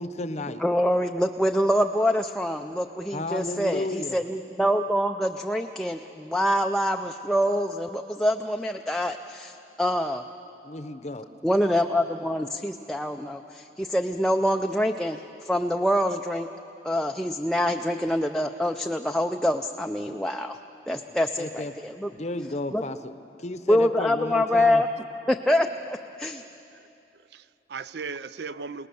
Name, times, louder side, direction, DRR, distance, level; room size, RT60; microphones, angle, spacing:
voice 1, 0.0-0.6 3.1-4.2 10.6-11.3 21.4-21.7 22.1-24.8, left 2 dB, 35° left, 11 dB, 0.8 m, -33 dB
voice 2, 0.6-10.2 11.4-16.5 16.8-20.6 20.9-22.1 22.7-22.8 23.7-24.9 25.3-26.4, equal, 5° left, 3 dB, 0.4 m, -25 dB
voice 3, 26.4-26.9 27.3-28.9, right 5 dB, 60° right, 15 dB, 0.5 m, -38 dB
28.5 x 18.5 x 6.9 m, 2.8 s
head